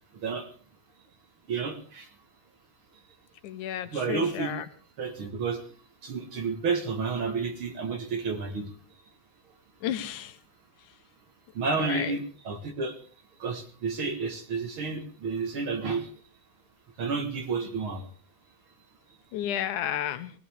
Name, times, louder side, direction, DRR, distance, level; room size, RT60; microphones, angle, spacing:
voice 1, 1.5-2.1 3.9-4.5 5.0-5.6 6.0-8.7 11.6-13.0 13.4-16.1 17.0-18.1, right 4 dB, 50° right, 5 dB, 1.9 m, -30 dB
voice 2, 3.4-4.6 9.8-10.3 11.8-12.2 19.3-20.3, left 11 dB, 85° left, 10 dB, 2.5 m, -32 dB
20.5 x 16.0 x 3.5 m, 0.42 s
omnidirectional pair, 3.5 m